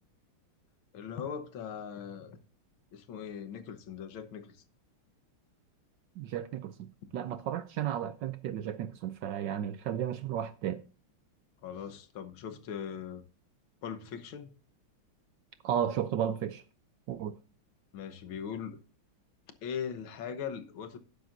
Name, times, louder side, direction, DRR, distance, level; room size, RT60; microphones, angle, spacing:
voice 1, 0.9-2.4 2.9-4.6 11.6-13.2 13.8-14.5 17.9-18.8 19.6-21.0, left 7 dB, 70° left, 1.8 m, -40 dB
voice 2, 6.2-6.7 7.1-10.8 15.6-16.6 17.1-17.4, right 10 dB, 75° right, 1.1 m, -33 dB
11.5 x 10.0 x 2.6 m
omnidirectional pair, 2.4 m